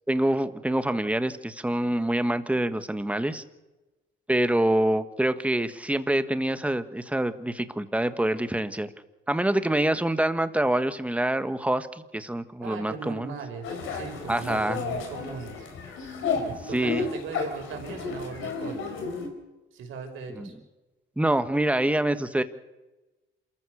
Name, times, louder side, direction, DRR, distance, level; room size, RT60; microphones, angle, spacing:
voice 1, 0.1-3.4 4.3-8.9 9.3-11.9 12.1-13.3 14.3-14.8 16.7-17.0 20.3-20.5 21.2-22.4, right 1 dB, 5° right, 11 dB, 1.5 m, -26 dB
voice 2, 12.6-15.7 16.3-16.4 16.7-18.9 19.7-20.5, right 5 dB, 80° right, 3 dB, 5.7 m, -38 dB
sound 1, 13.6-19.3, left 5 dB, 85° left, 4.6 m, -32 dB
27.5 x 14.5 x 6.7 m, 1.1 s
cardioid pair, 90°, 20 cm